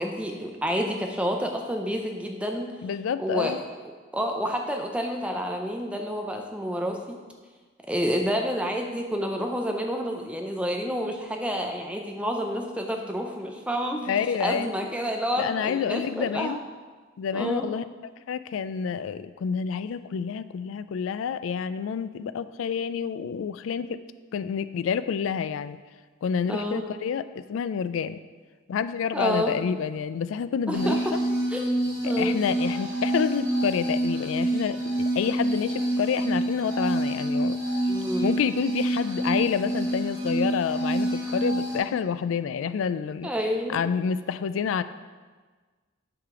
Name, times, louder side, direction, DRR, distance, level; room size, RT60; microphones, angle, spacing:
voice 1, 0.0-2.7 3.2-3.5 3.8-7.2 7.9-16.6 17.3-17.7 26.5-26.8 29.1-29.6 30.7-31.2 31.5-31.7 32.0-32.4 37.9-38.3 43.2-43.9, equal, 5° right, 2 dB, 0.6 m, -29 dB
voice 2, 2.8-3.6 14.1-14.7 15.4-16.6 17.2-17.8 18.3-24.0 24.3-25.8 26.2-28.2 28.7-31.0 32.0-37.6 38.2-43.3 43.7-44.8, left 7 dB, 75° left, 13 dB, 0.3 m, -28 dB
sound 1, 30.7-41.8, right 1 dB, 80° right, 2.0 m, -27 dB
8.8 x 5.0 x 3.7 m, 1.4 s
head